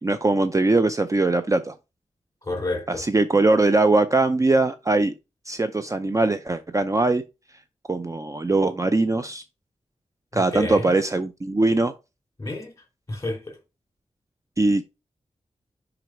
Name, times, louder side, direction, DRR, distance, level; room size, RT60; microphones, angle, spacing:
voice 1, 0.0-1.8 2.9-5.1 5.5-7.2 7.9-9.4 10.3-11.9 14.6-14.8, right 2 dB, 25° right, 0.5 m, -21 dB
voice 2, 2.4-3.0 10.3-10.9 12.4-12.7 13.1-13.6, left 2 dB, 25° left, 3.0 m, -30 dB
6.1 x 5.1 x 4.5 m
wide cardioid pair, 80°, 12 cm